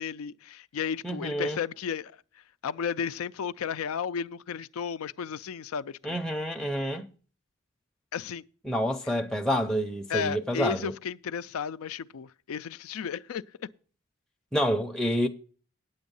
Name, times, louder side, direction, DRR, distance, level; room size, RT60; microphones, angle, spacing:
voice 1, 0.0-2.1 2.6-6.2 8.1-8.4 10.1-13.7, left 7 dB, 90° left, 0.4 m, -33 dB
voice 2, 1.0-1.6 6.0-7.1 8.7-10.9 14.5-15.3, equal, 5° left, 0.5 m, -28 dB
9.4 x 7.9 x 5.3 m
head